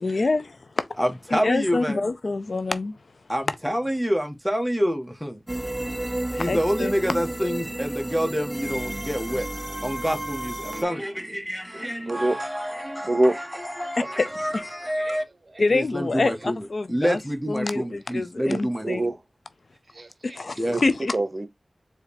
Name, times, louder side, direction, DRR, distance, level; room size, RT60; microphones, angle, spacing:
voice 1, 0.0-0.9 1.3-3.0 6.3-6.9 14.2-14.6 15.6-17.2 17.5-19.0 20.2-21.2, left 3 dB, 70° left, 0.5 m, -26 dB
voice 2, 1.0-2.0 3.3-5.4 6.3-9.5 9.8-15.2 15.7-19.1 20.6-20.8, equal, ahead, 1.6 m, -27 dB
sound 1, 5.5-10.8, right 1 dB, 20° right, 0.3 m, -31 dB
voice 3, 12.1-12.4 13.0-13.6 14.0-14.1 15.0-15.2 17.6-17.8 18.5-19.1 19.9-20.4 20.7-21.5, right 1 dB, 45° right, 1.0 m, -26 dB
4.9 x 3.3 x 3.0 m
cardioid pair, 40°, 0 cm